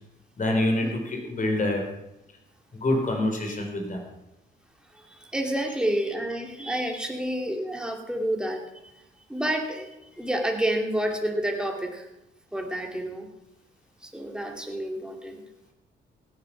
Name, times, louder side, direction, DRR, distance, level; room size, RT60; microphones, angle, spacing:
voice 1, 0.4-1.8 2.7-4.0, left 1 dB, 40° left, 4 dB, 4.4 m, -26 dB
voice 2, 5.3-8.6 9.3-9.9 10.2-12.1 12.5-13.3 14.1-15.4, right 1 dB, 5° right, 2 dB, 2.5 m, -29 dB
16.5 x 9.6 x 5.9 m, 0.88 s
cardioid pair, 90°, 20 cm